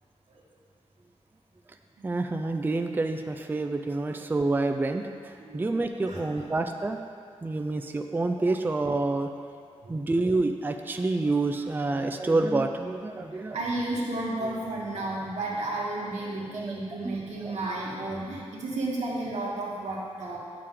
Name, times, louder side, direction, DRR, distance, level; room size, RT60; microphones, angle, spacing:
voice 1, 2.0-7.0 7.4-9.3 9.9-13.6 16.5-16.8 17.0-17.2 17.4-17.5, right 2 dB, 15° right, 6 dB, 0.3 m, -28 dB
voice 2, 13.5-20.4, right 2 dB, 85° right, -4 dB, 1.6 m, -32 dB
9.0 x 6.6 x 3.7 m, 2.3 s
wide cardioid pair, 100°, 11 cm